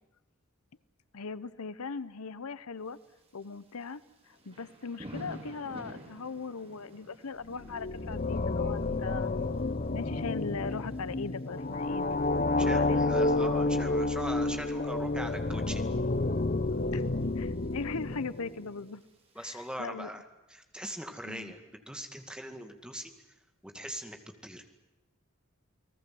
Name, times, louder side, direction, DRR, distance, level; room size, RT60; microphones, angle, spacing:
voice 1, 1.1-3.0 3.3-4.0 4.3-9.3 9.9-12.2 12.6-13.1 16.9-17.0 17.4-19.0 19.4-20.1 21.2-21.5, left 4 dB, 90° left, 17 dB, 0.8 m, -39 dB
Thunder / Rain, 2.8-19.7, right 1 dB, 30° right, 4.7 m, -53 dB
sound 1, 7.5-18.7, left 2 dB, 40° left, 0.8 m, -30 dB
voice 2, 12.6-15.8 19.4-20.2 20.5-23.1 23.6-24.2 24.4-24.6, equal, 5° right, 5 dB, 2.1 m, -40 dB
29.5 x 19.0 x 7.8 m, 1.0 s
head